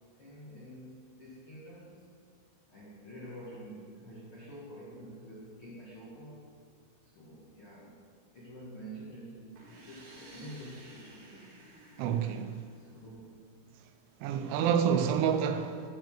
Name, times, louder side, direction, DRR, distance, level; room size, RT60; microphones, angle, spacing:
voice 1, 0.2-2.0 2.7-6.4 7.0-8.0 8.3-11.5 12.7-13.5 14.3-15.0, right 1 dB, 75° left, 1.2 m, -48 dB
sound 1, 9.5-13.3, right 1 dB, 55° right, 2.6 m, -54 dB
voice 2, 12.0-12.6 14.2-15.9, right 8 dB, 85° right, 2.9 m, -28 dB
11.5 x 5.0 x 7.3 m
omnidirectional pair, 5.6 m